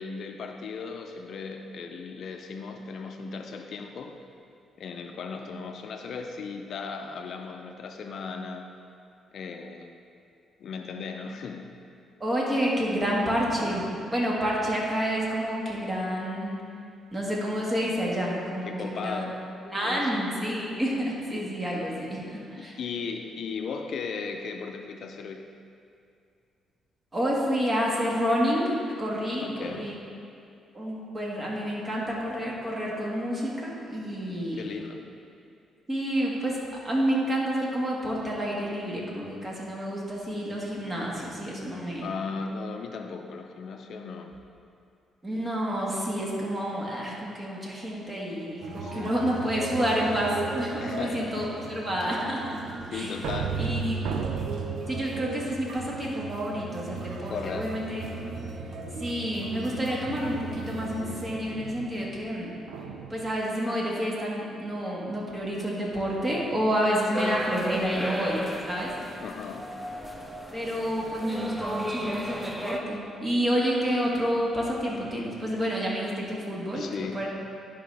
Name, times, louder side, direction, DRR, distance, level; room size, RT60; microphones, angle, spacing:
voice 1, 0.0-4.1 4.8-8.7 9.3-9.9 10.6-11.7 13.2-13.6 18.7-19.4 19.8-20.3 22.8-25.5 29.4-29.9 34.5-35.0 42.0-44.3 48.8-49.1 50.8-51.5 52.9-53.6 57.3-57.8 67.2-67.5 69.2-69.7 76.7-77.3, left 5 dB, 65° left, 5 dB, 0.5 m, -37 dB
voice 2, 12.2-13.9 14.1-16.5 17.1-19.2 19.6-20.9 21.3-22.8 27.1-30.0 30.7-34.6 35.9-36.6 36.8-42.1 45.2-52.6 52.9-53.1 53.6-54.0 54.9-58.1 59.0-62.5 63.1-68.9 70.5-77.3, equal, 25° right, -4 dB, 1.8 m, -29 dB
sound 1, 48.6-61.4, right 3 dB, 60° right, 0.8 m, -38 dB
sound 2, 52.8-56.5 57.1-57.7 58.1-58.5 60.0-63.3, right 5 dB, 90° right, 0.5 m, -35 dB
sound 3, 67.1-72.8, equal, 5° right, 0.7 m, -35 dB
11.0 x 5.0 x 3.4 m, 2.4 s
cardioid pair, 90°, 0 cm